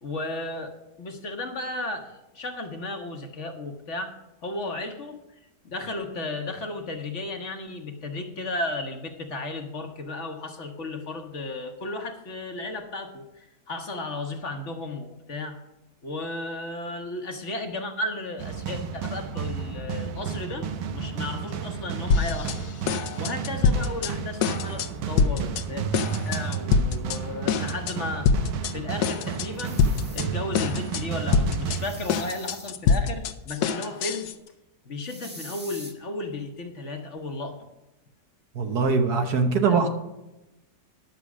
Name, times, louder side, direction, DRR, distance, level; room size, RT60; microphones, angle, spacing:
voice 1, 0.0-4.1 4.4-5.2 5.6-15.6 16.0-22.6 23.2-25.9 26.2-28.3 28.7-29.8 30.1-34.3 34.8-37.7 39.6-39.8, left 2 dB, 50° left, 4 dB, 1.3 m, -34 dB
sound 1, 18.4-32.6, right 7 dB, 90° right, 1.5 m, -32 dB
sound 2, 22.1-22.6 22.9-24.1 24.4-24.9 25.2-25.6 25.9-27.2 27.5-27.9 28.3-28.7 29.0-30.3 30.5-31.0 31.3-34.3, left 5 dB, 70° left, 1.2 m, -24 dB
sound 3, 29.5-30.2 31.7-32.7 35.0-35.9, right 1 dB, 10° right, 0.9 m, -44 dB
voice 2, 38.5-39.9, right 4 dB, 65° right, 5 dB, 1.6 m, -22 dB
10.5 x 6.8 x 6.1 m, 0.97 s
omnidirectional pair, 1.8 m